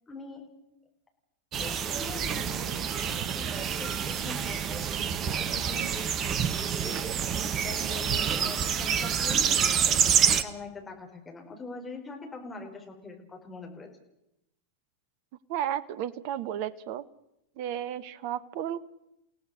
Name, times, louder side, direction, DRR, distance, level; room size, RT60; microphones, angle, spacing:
voice 1, 0.1-0.5 1.6-7.0 7.5-9.6 9.9-10.0 10.2-13.9, left 3 dB, 15° left, 2 dB, 4.7 m, -43 dB
sound 1, 1.5-10.4, right 8 dB, 30° right, 1.3 m, -27 dB
voice 2, 15.5-17.0 17.6-18.8, right 10 dB, 45° right, 18 dB, 1.1 m, -33 dB
29.5 x 17.0 x 6.5 m, 0.85 s
figure-of-eight pair, 90°, 0 cm